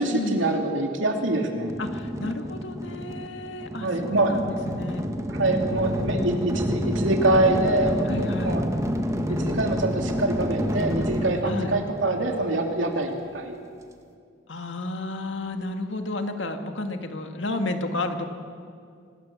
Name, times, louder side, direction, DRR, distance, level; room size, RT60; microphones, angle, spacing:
voice 1, 0.0-1.7 3.8-4.4 5.3-8.6 9.3-13.6, right 2 dB, 85° right, 3 dB, 2.8 m, -25 dB
sound 1, 1.7-12.7, equal, 15° right, 1.3 m, -29 dB
voice 2, 1.8-5.1 8.0-8.6 11.4-11.7 14.5-18.3, left 2 dB, 75° left, 6 dB, 1.9 m, -32 dB
sound 2, 5.8-11.3, equal, 35° left, 4.3 m, -37 dB
24.5 x 19.5 x 7.3 m, 2.3 s
head